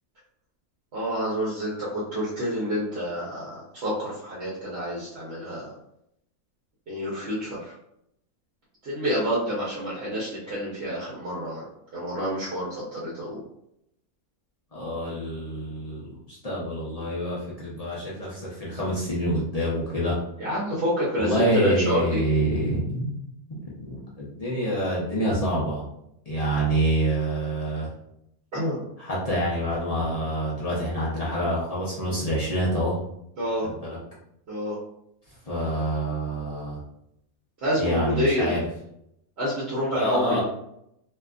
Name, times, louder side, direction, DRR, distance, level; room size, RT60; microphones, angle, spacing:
voice 1, 0.9-5.7 6.9-7.8 8.8-13.4 20.4-22.2 28.5-28.8 33.4-33.7 34.5-34.8 37.6-38.6 39.4-40.4, equal, 55° right, -7 dB, 0.9 m, -28 dB
voice 2, 14.7-20.2 21.2-23.2 23.7-25.8 26.3-27.9 29.0-32.9 33.8-34.0 35.5-36.8 37.8-38.6 39.9-40.4, right 1 dB, 45° left, -7 dB, 0.5 m, -27 dB
2.7 x 2.4 x 2.3 m, 0.77 s
omnidirectional pair, 1.5 m